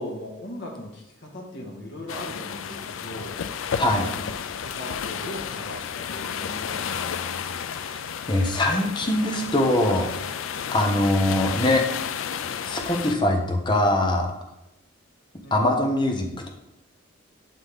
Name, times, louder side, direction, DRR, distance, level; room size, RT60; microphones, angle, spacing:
voice 1, 0.0-4.3 4.6-7.2 15.4-15.7, left 1 dB, 60° left, 0 dB, 1.9 m, -39 dB
sound 1, 2.1-13.1, left 7 dB, 85° left, 0.4 m, -32 dB
voice 2, 8.3-10.0 10.7-11.8 12.2-12.3 12.6-14.3 15.5-16.5, left 1 dB, 25° left, 2 dB, 1.1 m, -22 dB
11.5 x 4.2 x 3.7 m, 0.89 s
head